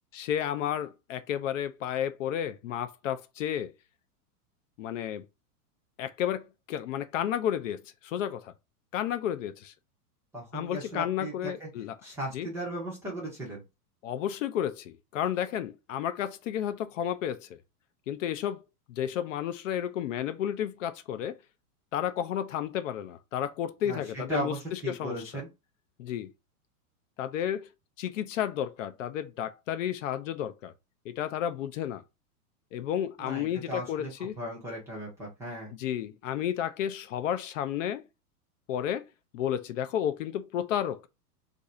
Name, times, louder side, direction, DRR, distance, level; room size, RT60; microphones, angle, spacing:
voice 1, 0.1-3.7 4.8-5.2 6.0-8.5 8.9-9.7 10.5-11.9 12.3-12.5 14.0-17.6 18.1-18.6 18.9-21.4 21.9-25.4 26.0-26.3 27.2-27.7 28.0-30.7 31.0-32.0 32.7-34.3 35.7-38.0 38.7-39.0 39.3-41.1, left 10 dB, 55° left, 0.5 m, -32 dB
voice 2, 10.3-11.7 12.0-13.6 23.8-25.5 33.2-34.1 34.4-35.7, right 1 dB, 5° right, 0.5 m, -36 dB
2.6 x 2.5 x 4.2 m
supercardioid pair, 160°, 46 cm